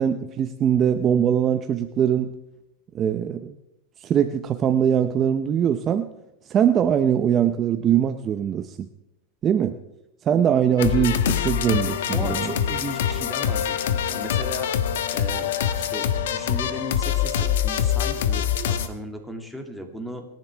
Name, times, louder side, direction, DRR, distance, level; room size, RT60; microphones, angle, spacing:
voice 1, 0.0-2.3 2.9-3.5 4.0-6.1 6.5-8.9 9.4-9.8 10.2-12.5, right 9 dB, 25° right, 8 dB, 0.8 m, -22 dB
sound 1, 10.8-18.9, left 9 dB, 80° left, 1.3 m, -24 dB
voice 2, 12.1-14.7 15.1-20.3, equal, ahead, 3 dB, 2.4 m, -36 dB
29.5 x 10.5 x 3.5 m, 0.91 s
supercardioid pair, 145°, 0 cm